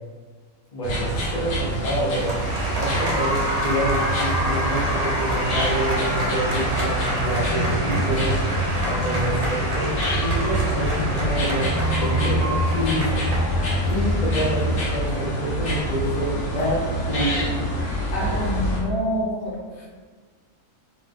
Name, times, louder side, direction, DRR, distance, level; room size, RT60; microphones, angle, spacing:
voice 1, 0.7-2.4 2.8-8.4 8.8-9.9 10.2-13.2 13.8-17.5, right 1 dB, 30° left, -6 dB, 1.1 m, -27 dB
sound 1, 0.8-18.8, equal, 60° left, 1.1 m, -26 dB
Applause, 1.6-18.7, equal, 40° right, 0.5 m, -29 dB
voice 2, 18.1-19.9, equal, 75° left, -3 dB, 1.3 m, -27 dB
3.6 x 3.1 x 3.6 m, 1.5 s
omnidirectional pair, 1.6 m